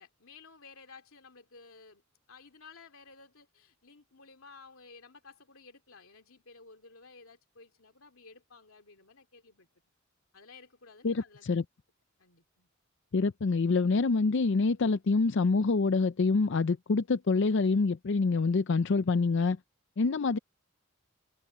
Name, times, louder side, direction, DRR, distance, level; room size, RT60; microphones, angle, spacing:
voice 1, 0.0-2.0 2.3-9.7 10.3-11.6 12.2-12.7, left 4 dB, 80° left, 2.7 m, -54 dB
voice 2, 11.0-11.6 13.1-19.6 20.0-20.4, left 4 dB, 60° left, 0.5 m, -26 dB
head